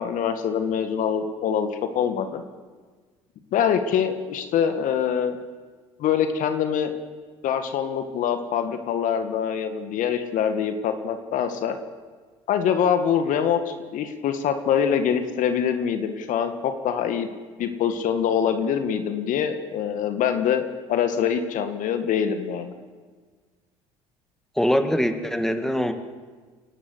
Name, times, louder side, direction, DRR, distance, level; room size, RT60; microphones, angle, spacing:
voice 1, 0.0-2.4 3.5-5.4 6.0-6.9 7.4-11.8 12.5-17.3 17.6-22.7, left 8 dB, 60° left, 8 dB, 1.9 m, -24 dB
voice 2, 24.6-25.9, equal, 5° left, 7 dB, 2.2 m, -23 dB
28.5 x 12.0 x 8.2 m, 1.5 s
hypercardioid pair, 65°, 15 cm